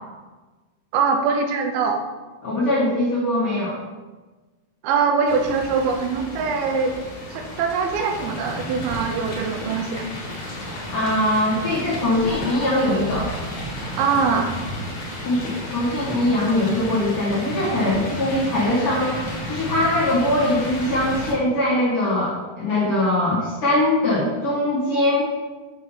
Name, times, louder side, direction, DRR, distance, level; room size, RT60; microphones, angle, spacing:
voice 1, 0.9-2.1 4.8-6.9 7.3-10.1 14.0-14.6, right 5 dB, 80° right, 4 dB, 2.3 m, -22 dB
voice 2, 2.4-3.7 10.9-13.3 15.2-19.1 19.5-25.3, left 1 dB, 70° left, -9 dB, 1.3 m, -21 dB
sound 1, 5.2-21.3, equal, 55° left, 2.1 m, -32 dB
7.2 x 2.9 x 5.5 m, 1.3 s
omnidirectional pair, 4.7 m